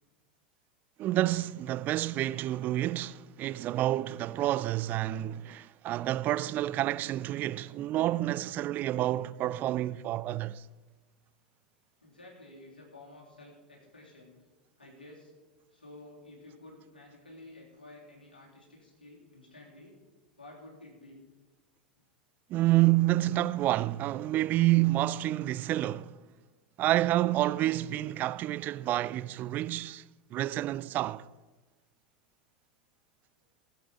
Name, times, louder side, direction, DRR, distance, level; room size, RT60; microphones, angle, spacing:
voice 1, 1.0-10.6 22.5-26.1 26.8-30.0 30.3-31.3, right 15 dB, 40° right, 0.3 m, -29 dB
voice 2, 12.0-14.4 14.8-15.3 15.7-20.0 20.4-21.2, left 2 dB, 85° left, 3.2 m, -52 dB
16.0 x 8.0 x 5.1 m
figure-of-eight pair, 85°, 5 cm